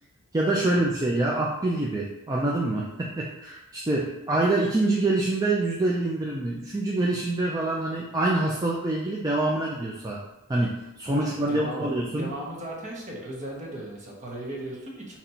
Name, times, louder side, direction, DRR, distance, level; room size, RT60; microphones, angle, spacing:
voice 1, 0.3-10.2 10.5-12.3, right 2 dB, 15° right, -3 dB, 0.4 m, -26 dB
voice 2, 11.5-15.2, right 1 dB, 35° right, -3 dB, 1.1 m, -37 dB
4.1 x 3.0 x 4.3 m, 0.94 s
head